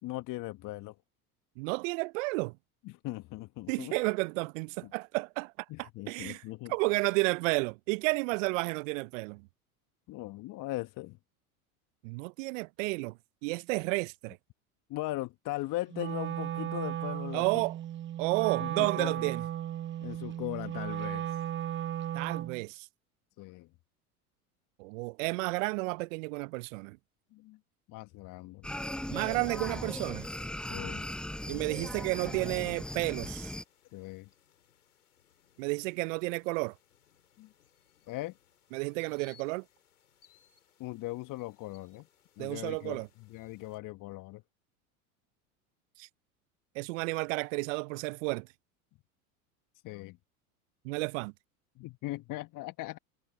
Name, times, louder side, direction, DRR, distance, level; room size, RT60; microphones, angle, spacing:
voice 1, 0.0-0.9 2.8-4.0 4.8-4.9 5.7-6.7 10.1-11.2 14.9-17.6 18.6-19.3 20.0-21.4 23.4-23.7 27.3-27.6 27.9-28.6 30.7-31.0 33.9-34.3 37.4-37.5 38.1-38.4 40.8-42.1 42.4-44.4 49.8-50.2 51.8-53.0, left 18 dB, 45° left, 1.3 m, -39 dB
voice 2, 1.6-2.5 3.7-5.5 5.8-6.4 6.7-9.5 12.0-13.2 13.4-14.4 17.3-17.7 18.2-19.4 22.1-22.9 24.8-27.0 29.1-30.3 31.5-33.5 35.6-36.7 38.7-39.6 42.4-43.1 46.0-46.1 46.8-48.5 50.8-51.3, right 27 dB, 60° right, 0.6 m, -32 dB
Wind instrument woodwind instrument, 15.9-22.6, right 11 dB, 25° right, 0.9 m, -35 dB
sound 1, 28.6-33.6, left 1 dB, ahead, 0.6 m, -38 dB
sound 2, 32.6-43.8, left 9 dB, 85° left, 5.4 m, -67 dB
hypercardioid pair, 80°, 44 cm